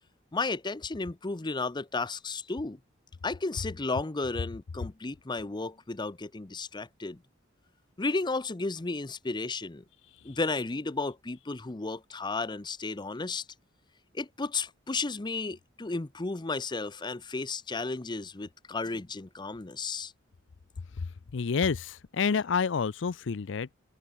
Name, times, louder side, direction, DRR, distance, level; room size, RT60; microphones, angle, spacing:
voice 1, 0.3-2.8 3.2-7.2 8.0-9.8 10.2-13.4 14.1-20.1, left 3 dB, 25° left, 0.7 m, -33 dB
voice 2, 21.3-23.7, left 5 dB, 65° left, 0.5 m, -29 dB
head